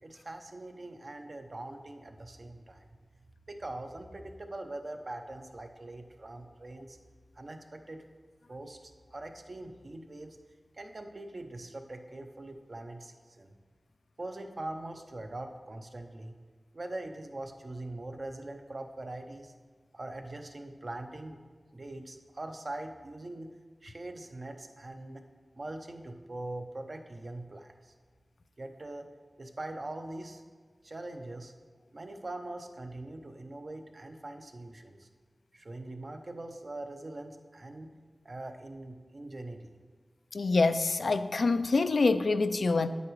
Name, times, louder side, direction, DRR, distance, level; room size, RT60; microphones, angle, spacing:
voice 1, 0.0-2.9 3.5-7.0 7.4-8.0 8.5-10.4 10.8-13.5 14.2-16.3 16.7-19.5 19.9-21.4 21.7-23.5 23.8-25.2 25.5-27.9 28.6-29.1 29.4-30.4 30.8-31.5 31.9-35.1 35.5-37.9 38.2-39.7, right 2 dB, 55° right, 5 dB, 0.7 m, -42 dB
voice 2, 40.3-42.9, left 3 dB, 80° left, 11 dB, 0.3 m, -26 dB
8.7 x 8.1 x 3.1 m, 1.5 s
wide cardioid pair, 65°, 0 cm